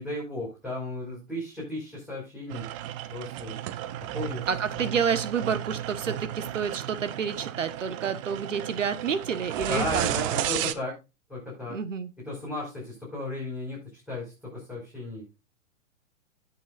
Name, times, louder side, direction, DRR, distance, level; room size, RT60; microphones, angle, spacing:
voice 1, 0.0-2.7 3.1-3.6 4.0-4.5 4.7-4.8 9.7-10.9 11.3-11.8 12.2-15.2, left 2 dB, ahead, -7 dB, 5.4 m, -35 dB
sound 1, 2.5-10.7, right 12 dB, 25° right, 0.5 m, -33 dB
voice 2, 4.5-10.1 11.7-12.1, right 6 dB, 70° right, 14 dB, 1.3 m, -29 dB
17.0 x 6.5 x 2.5 m, 0.25 s
figure-of-eight pair, 115°, 39 cm